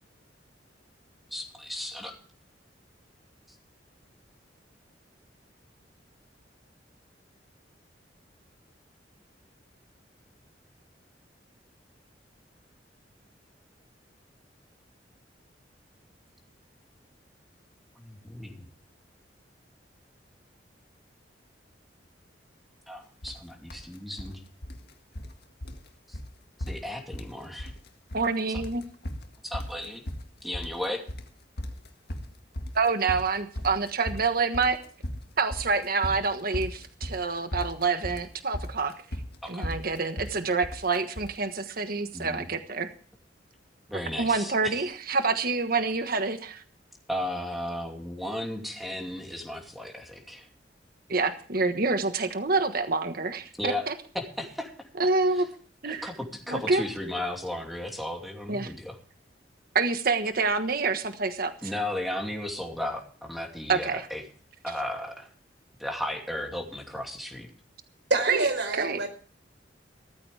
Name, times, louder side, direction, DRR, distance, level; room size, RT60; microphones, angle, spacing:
voice 1, 1.3-2.2 18.0-18.7 22.9-24.4 26.1-26.2 26.7-27.7 28.5-28.6 29.4-30.0 30.4-31.0 39.4-39.7 42.1-42.4 43.9-44.8 47.1-50.5 53.6-53.9 54.1-54.7 55.0-55.1 55.3-55.4 55.8-58.9 61.6-64.2 64.6-65.3 65.8-67.5, left 1 dB, ahead, 1 dB, 2.7 m, -35 dB
sound 1, 23.2-23.4 23.7-24.3 24.6-25.4 25.6-25.9 26.1-26.3 26.6-27.3 27.6-28.3 28.6-41.4, equal, 60° left, 1.9 m, -37 dB
voice 2, 28.1-28.8 32.7-34.8 35.4-38.9 39.5-42.9 44.2-46.6 51.1-53.9 55.0-55.5 55.8-56.0 56.5-56.8 58.5-58.7 59.7-61.5 63.7-64.0 68.3-68.4 68.8-69.0, right 4 dB, 55° right, 8 dB, 1.4 m, -27 dB
voice 3, 68.1-69.1, right 3 dB, 90° right, 7 dB, 4.3 m, -26 dB
17.0 x 14.0 x 3.4 m, 0.43 s
head